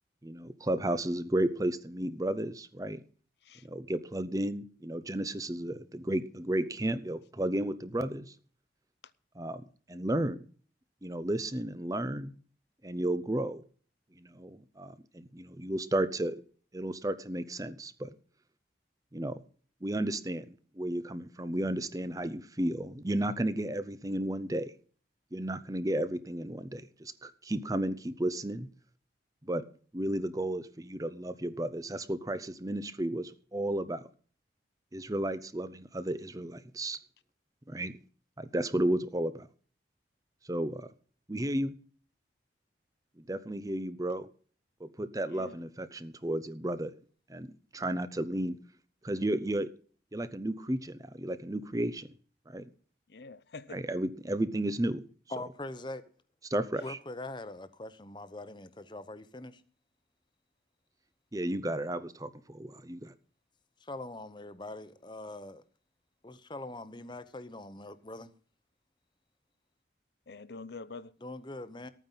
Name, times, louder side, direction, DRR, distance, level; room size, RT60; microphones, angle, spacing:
voice 1, 0.2-3.0 3.7-8.3 9.4-9.6 9.9-10.4 11.0-12.3 12.8-13.6 14.2-16.4 16.7-18.1 19.1-19.4 19.8-20.5 20.7-24.7 25.3-28.7 29.4-29.7 29.9-34.0 34.9-37.0 37.7-37.9 38.4-39.5 40.4-40.9 41.3-41.7 43.3-44.3 44.8-46.9 47.3-48.6 49.0-49.7 50.1-52.1 52.5-52.7 53.7-55.0 56.5-57.0 61.3-63.1, right 1 dB, 20° right, 0.7 m, -33 dB
voice 2, 45.3-45.6 53.1-53.8 70.3-71.1, left 4 dB, 65° left, 0.7 m, -46 dB
voice 3, 55.3-56.0 56.8-59.6 63.8-65.6 66.2-68.3 71.2-71.9, left 2 dB, 25° left, 0.9 m, -42 dB
13.5 x 9.2 x 5.7 m
head